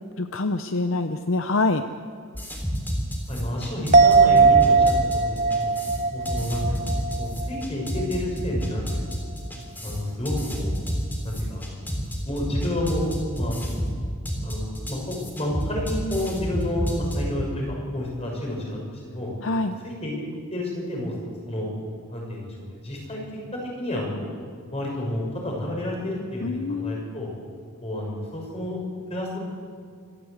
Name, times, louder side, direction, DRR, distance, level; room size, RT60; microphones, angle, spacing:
voice 1, 0.2-1.8 19.4-19.8 26.4-27.0, left 3 dB, 60° left, 8 dB, 0.7 m, -25 dB
sound 1, 2.3-17.3, equal, 10° left, 3.4 m, -29 dB
voice 2, 3.3-5.7 6.1-9.3 9.8-10.8 11.2-13.1 13.3-13.8 14.4-19.3 19.8-20.2 20.5-21.2 21.5-21.7 22.1-23.2 23.5-24.3 24.7-27.3 27.8-28.8 29.1-29.4, left 1 dB, 30° left, -1 dB, 6.0 m, -30 dB
sound 2, 3.9-7.6 8.0-8.1, right 4 dB, 35° right, 0.7 m, -19 dB
26.5 x 14.0 x 8.1 m, 2.1 s
head